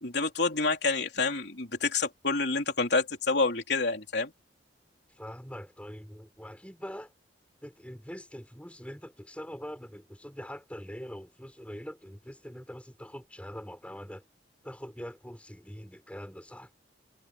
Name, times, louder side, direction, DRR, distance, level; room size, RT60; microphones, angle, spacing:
voice 1, 0.0-4.3, left 3 dB, 65° left, 3.6 m, -28 dB
voice 2, 5.1-7.1 7.6-14.2 14.6-16.7, equal, 5° left, 4.8 m, -43 dB
head